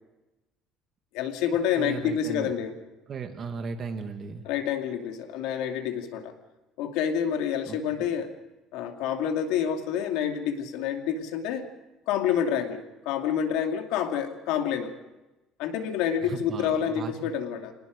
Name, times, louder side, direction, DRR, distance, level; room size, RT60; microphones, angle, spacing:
voice 1, 1.1-2.7 4.4-6.3 6.8-8.3 8.7-11.6 12.1-14.9 15.6-17.7, left 8 dB, 85° left, 5 dB, 2.4 m, -28 dB
voice 2, 1.8-2.5 3.1-4.5 7.7-7.8 16.2-17.1, right 5 dB, 30° right, 6 dB, 1.9 m, -36 dB
27.0 x 19.0 x 5.2 m, 1.0 s
cardioid pair, 170°, 0 cm